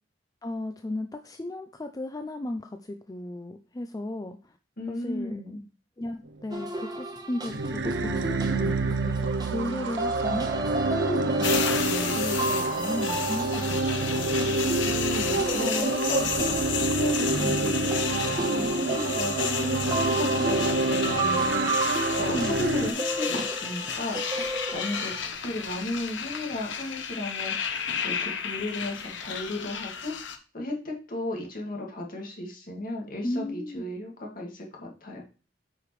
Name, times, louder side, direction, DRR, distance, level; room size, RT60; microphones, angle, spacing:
voice 1, 0.4-4.6 4.9-5.4 6.0-14.5 22.3-22.7 33.2-33.8, left 1 dB, 20° left, 7 dB, 0.4 m, -35 dB
voice 2, 4.8-5.6 14.8-19.6 19.8-21.9 22.2-24.2 24.7-27.8 28.0-30.3 30.5-35.2, left 2 dB, 50° left, 0 dB, 2.1 m, -35 dB
sound 1, 6.5-25.3, right 2 dB, 25° right, 1.1 m, -33 dB
sound 2, 7.5-22.9, right 3 dB, 80° right, 0.6 m, -28 dB
sound 3, 11.4-30.4, left 7 dB, 80° left, 0.9 m, -32 dB
8.6 x 5.0 x 3.2 m, 0.35 s
head